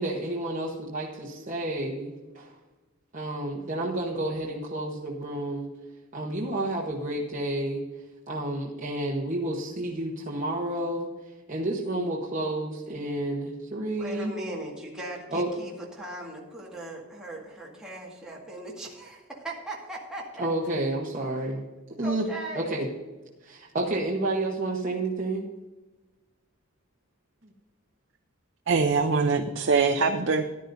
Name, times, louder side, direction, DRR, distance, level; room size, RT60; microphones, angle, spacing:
voice 1, 0.0-2.5 3.1-5.7 6.1-7.8 8.3-11.1 11.5-14.3 15.3-15.5 20.4-21.6 22.0-22.3 22.5-22.9 23.4-25.5, right 1 dB, 35° right, -3 dB, 1.1 m, -30 dB
voice 2, 14.0-20.5 22.0-22.7, right 1 dB, 5° right, -5 dB, 1.9 m, -39 dB
voice 3, 28.7-30.5, right 4 dB, 60° right, 5 dB, 0.6 m, -23 dB
14.5 x 10.5 x 2.7 m, 1.2 s
head